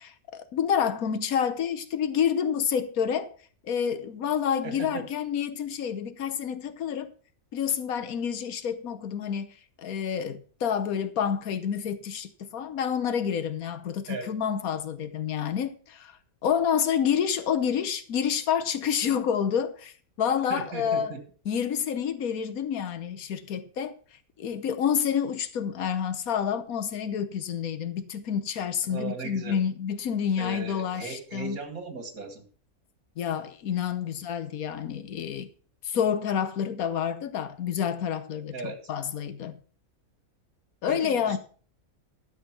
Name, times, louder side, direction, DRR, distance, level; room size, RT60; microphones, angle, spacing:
voice 1, 0.0-3.3 3.6-7.1 7.5-16.2 16.4-21.2 21.4-24.0 24.4-31.6 33.2-35.5 35.8-39.6 40.8-41.4, left 8 dB, 90° left, 1.4 m, -28 dB
voice 2, 4.6-5.0 14.1-14.3 20.5-21.2 28.9-29.6 30.4-32.4 38.5-38.8 40.9-41.4, right 3 dB, 80° right, 2.3 m, -37 dB
12.0 x 6.3 x 5.9 m
omnidirectional pair, 1.5 m